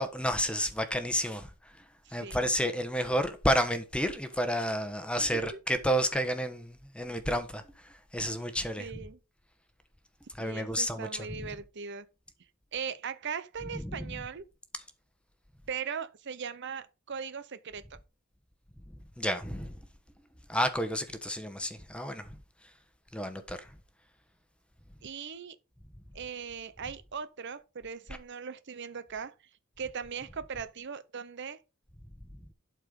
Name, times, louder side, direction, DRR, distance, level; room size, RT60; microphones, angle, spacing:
voice 1, 0.0-1.8 2.1-9.0 10.3-11.5 13.8-14.2 19.2-19.7 20.5-22.4 23.1-23.7, equal, 5° left, 1.2 m, -31 dB
voice 2, 2.0-2.4 5.2-5.6 8.8-9.2 10.4-12.1 12.7-14.4 15.7-18.0 25.0-25.6 26.1-29.3 29.8-31.6, right 6 dB, 55° right, 0.7 m, -39 dB
11.5 x 4.5 x 5.2 m
head